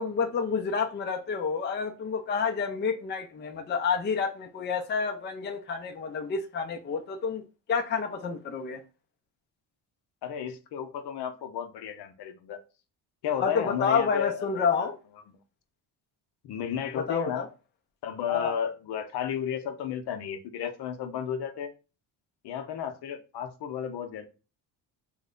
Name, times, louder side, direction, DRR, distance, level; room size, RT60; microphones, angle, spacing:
voice 1, 0.0-7.4 7.7-8.8 13.4-14.9 17.0-17.5 18.3-18.5, left 5 dB, 25° left, 0.4 m, -29 dB
voice 2, 10.2-12.6 13.2-14.9 16.4-17.4 18.0-21.7 22.4-24.3, left 8 dB, 65° left, 0.7 m, -33 dB
3.1 x 2.1 x 3.7 m
cardioid pair, 95°, 43 cm